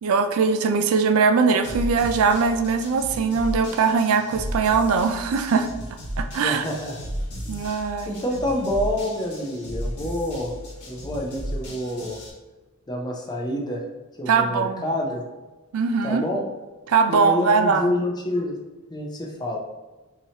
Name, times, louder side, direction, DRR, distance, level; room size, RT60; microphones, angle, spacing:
voice 1, 0.0-5.7 6.2-6.6 7.5-8.2 14.3-14.8 15.7-16.2 16.9-17.9, right 5 dB, 70° right, 7 dB, 0.3 m, -21 dB
sound 1, 1.6-12.3, equal, 80° left, 1.2 m, -34 dB
voice 2, 6.4-7.0 7.4-7.7 8.1-10.5 10.9-12.2 12.9-13.8 14.2-15.2 16.0-16.4 17.1-18.6 18.9-19.6, left 1 dB, 20° left, 0 dB, 0.5 m, -27 dB
4.6 x 2.8 x 2.8 m, 1.2 s
head